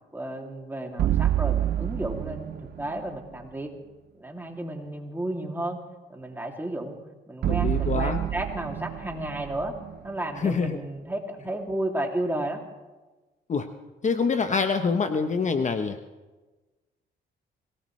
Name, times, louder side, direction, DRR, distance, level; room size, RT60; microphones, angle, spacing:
voice 1, 0.1-3.7 4.2-5.8 6.1-7.0 7.3-9.7 10.0-12.6, right 1 dB, 10° right, 1 dB, 2.6 m, -32 dB
sound 1, 1.0-3.2 7.4-10.7, right 12 dB, 55° right, 0.5 m, -28 dB
voice 2, 7.5-8.2 10.4-10.8 13.5-13.7 14.0-16.0, left 5 dB, 35° left, 8 dB, 0.9 m, -25 dB
24.5 x 18.0 x 3.2 m, 1.2 s
cardioid pair, 90°, 20 cm